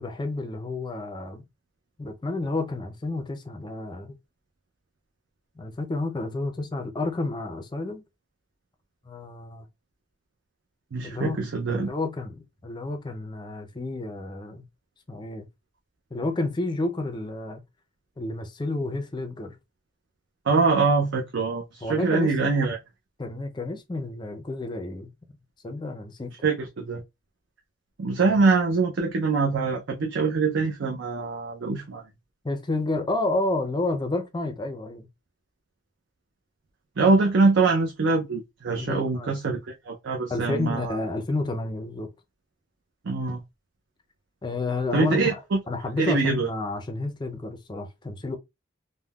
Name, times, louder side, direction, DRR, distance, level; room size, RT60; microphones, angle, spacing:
voice 1, 0.0-1.4 2.0-4.1 5.6-8.0 9.1-9.7 11.0-11.4 11.7-14.6 15.1-15.5 16.1-17.6 18.2-19.6 21.8-22.3 23.2-25.1 25.6-26.3 28.3-28.4 32.4-35.1 38.7-39.3 40.3-42.1 44.4-45.4 45.7-48.4, left 2 dB, 20° left, 0.4 m, -30 dB
voice 2, 10.9-11.9 20.5-22.8 26.4-27.0 28.0-32.0 37.0-39.6 39.9-41.0 43.1-43.4 44.9-45.6 46.0-46.5, right 4 dB, 60° right, 0.5 m, -23 dB
3.5 x 2.1 x 2.2 m
head